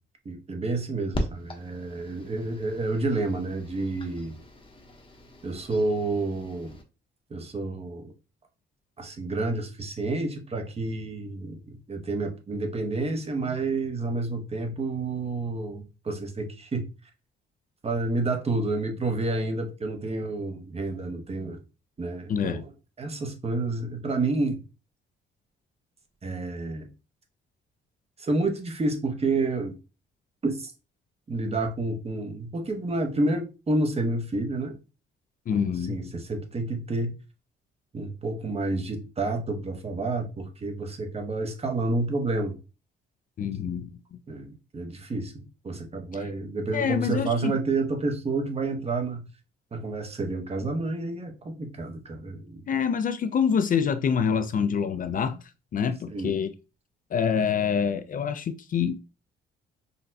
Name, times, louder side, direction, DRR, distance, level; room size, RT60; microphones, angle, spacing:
voice 1, 0.2-4.3 5.4-6.8 7.3-8.1 9.0-16.9 17.8-21.6 22.0-22.7 23.0-24.6 26.2-26.9 28.2-29.8 30.4-30.7 31.3-34.8 35.5-37.1 37.9-42.6 44.3-49.2 49.7-52.6 56.1-56.3, right 2 dB, 30° right, 0.9 m, -29 dB
sound 1, 1.1-6.8, left 1 dB, 25° left, 0.8 m, -39 dB
voice 2, 22.3-22.6 35.5-36.0 43.4-43.9 46.7-47.5 52.7-55.4 55.7-56.5 57.1-59.0, left 7 dB, 45° left, 0.4 m, -26 dB
3.9 x 2.2 x 2.7 m
cardioid pair, 90°, 20 cm